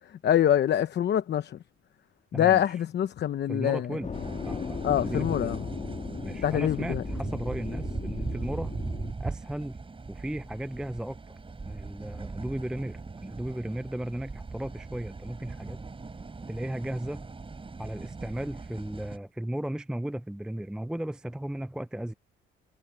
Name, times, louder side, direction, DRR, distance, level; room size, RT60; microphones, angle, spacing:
voice 1, 0.2-1.6 2.3-4.0 4.8-5.6 6.4-7.0, left 10 dB, 60° left, 0.9 m, -25 dB
voice 2, 2.3-2.8 3.5-4.1 4.4-5.5 6.2-8.7 9.2-9.8 10.1-11.2 11.7-15.9 16.5-17.2 17.8-22.1, right 1 dB, 5° right, 0.6 m, -35 dB
sound 1, 4.0-9.1, left 5 dB, 35° left, 1.8 m, -37 dB
sound 2, 4.1-19.2, right 4 dB, 25° right, 5.8 m, -39 dB
cardioid pair, 90°, 20 cm